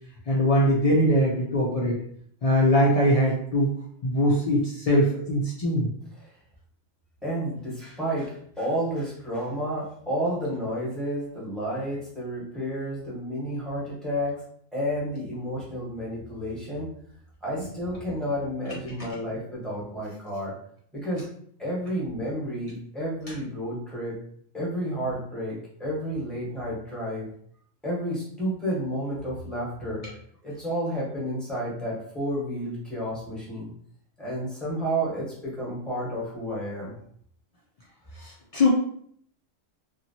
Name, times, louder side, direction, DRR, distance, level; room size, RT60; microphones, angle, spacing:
voice 1, 0.3-2.0 2.4-3.7 4.0-5.9 17.6-17.7 38.2-38.7, equal, 70° left, -4 dB, 0.3 m, -22 dB
voice 2, 7.2-14.4 14.7-16.9 17.4-20.5 20.9-21.3 21.6-24.2 24.5-27.3 27.8-30.1 30.4-33.7 34.2-36.9, equal, ahead, -6 dB, 0.9 m, -31 dB
2.8 x 2.5 x 2.7 m, 0.63 s
omnidirectional pair, 1.3 m